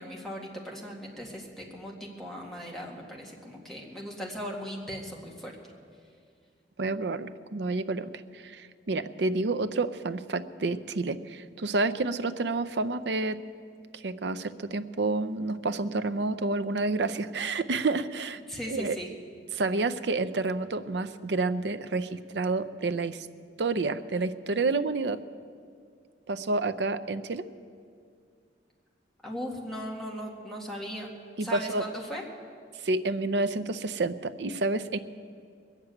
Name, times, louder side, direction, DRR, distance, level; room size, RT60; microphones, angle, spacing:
voice 1, 0.0-5.5 18.5-19.1 29.2-31.1 31.4-32.2, equal, ahead, -2 dB, 2.0 m, -38 dB
voice 2, 6.8-13.4 14.0-18.4 18.7-19.0 19.5-23.3 23.6-25.2 26.3-27.5 31.4-31.8 32.8-35.0, right 3 dB, 65° right, 12 dB, 0.6 m, -29 dB
21.0 x 7.4 x 9.0 m, 2.3 s
head